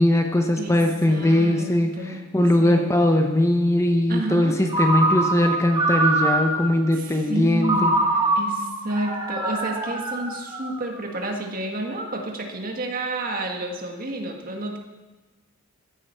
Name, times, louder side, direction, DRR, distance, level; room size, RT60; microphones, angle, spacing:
voice 1, 0.0-7.9, left 1 dB, 15° left, 4 dB, 0.8 m, -20 dB
voice 2, 1.1-1.7 2.0-2.3 2.6-2.9 4.1-4.6 6.9-7.9 8.4-14.8, right 2 dB, 40° right, 2 dB, 1.7 m, -30 dB
Ringtone, 4.7-6.8 7.6-11.0, right 2 dB, 25° right, 2.2 m, -24 dB
15.0 x 11.0 x 4.5 m, 1.2 s
head